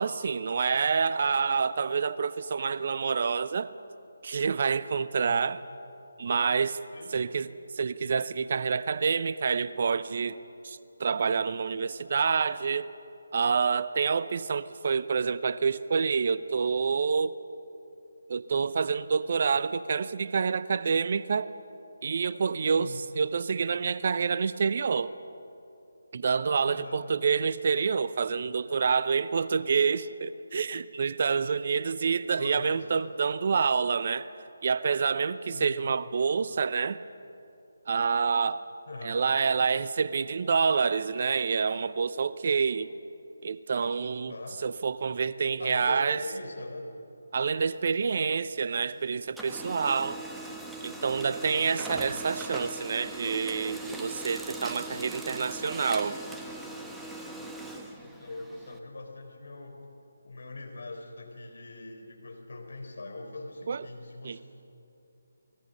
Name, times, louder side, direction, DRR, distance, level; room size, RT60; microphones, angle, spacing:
voice 1, 0.0-3.7 4.2-5.6 6.2-6.8 7.1-7.5 7.8-10.4 10.6-12.9 13.3-17.3 18.3-21.5 22.0-25.1 26.1-34.3 34.6-37.0 37.9-38.6 39.0-42.9 43.4-44.3 44.6-46.2 47.3-50.2 50.8-56.2 63.7-63.8 64.2-64.4, right 5 dB, 50° right, 15 dB, 0.7 m, -27 dB
voice 2, 6.9-7.3 22.7-23.0 26.6-27.0 32.4-33.1 35.5-35.9 38.9-39.2 44.3-44.6 45.6-46.9 51.4-51.6 58.0-59.8 60.2-64.4, left 2 dB, 65° left, 4 dB, 4.3 m, -42 dB
Printer, 47.7-48.9 49.2-58.8, right 2 dB, 5° right, 1.1 m, -40 dB
29.0 x 21.0 x 5.5 m, 2.8 s
figure-of-eight pair, 155°, 0 cm